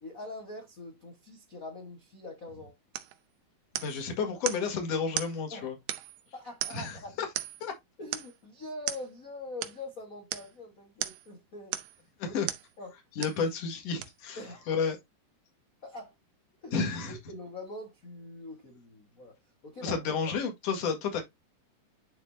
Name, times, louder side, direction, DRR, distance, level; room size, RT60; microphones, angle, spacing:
voice 1, 0.0-2.7 5.5-5.7 6.3-7.1 8.0-11.8 12.2-12.4 12.8-13.0 14.4-14.7 15.8-16.1 16.6-16.8 17.1-19.3 19.6-20.1, left 2 dB, 85° left, 0.7 m, -43 dB
sound 1, 2.9-3.2 3.8-4.0 4.5-4.7 5.2-5.4 5.9-6.2 6.6-7.0 7.4-7.7 8.1-8.4 8.9-9.1 9.6-9.8 10.3-10.5 11.0-11.3 11.7-12.0 12.5-12.7 13.2-13.4 14.0-14.1, right 13 dB, 80° right, 2.4 m, -36 dB
voice 2, 3.8-5.8 6.7-7.0 7.6-7.7 12.2-12.5 13.2-14.4 14.7-15.0 16.7-17.2 19.8-21.2, left 5 dB, 50° left, 2.7 m, -31 dB
10.5 x 4.2 x 2.7 m
omnidirectional pair, 4.0 m